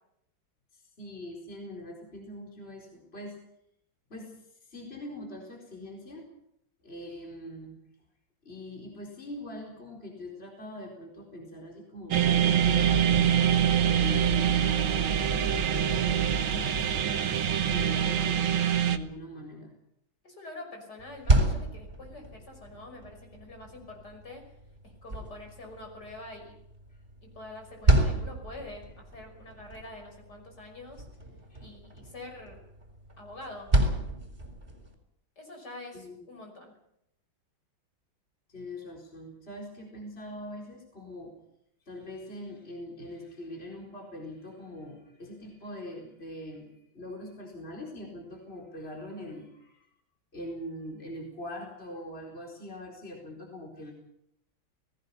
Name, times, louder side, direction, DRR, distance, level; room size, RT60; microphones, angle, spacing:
voice 1, 0.7-3.4 4.1-6.3 6.8-7.8 8.4-13.3 13.8-19.7 26.9-27.0 31.5-31.7 35.9-36.3 38.5-41.4 41.8-46.7 46.9-49.9 50.3-53.9, left 1 dB, 30° left, -1 dB, 4.5 m, -43 dB
sound 1, 12.1-19.0, right 9 dB, 85° right, 2.1 m, -25 dB
voice 2, 20.2-24.4 24.8-26.6 27.2-31.1 31.6-32.6 33.2-33.7 35.4-36.7, left 2 dB, 55° left, 3 dB, 6.4 m, -45 dB
sound 2, 21.0-34.9, right 1 dB, 25° right, 4.3 m, -31 dB
29.0 x 19.0 x 5.7 m, 0.77 s
omnidirectional pair, 2.2 m